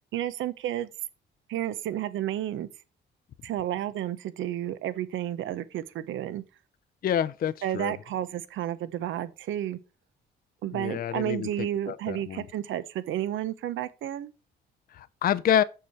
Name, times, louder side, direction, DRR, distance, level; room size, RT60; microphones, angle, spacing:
voice 1, 0.1-0.9 1.5-2.7 3.4-6.4 7.6-9.8 10.6-14.3, right 12 dB, 80° right, 0.8 m, -31 dB
voice 2, 7.0-7.9 10.7-12.5 14.9-15.6, left 9 dB, 50° left, 0.5 m, -28 dB
6.8 x 4.8 x 5.6 m
cardioid pair, 90°, 20 cm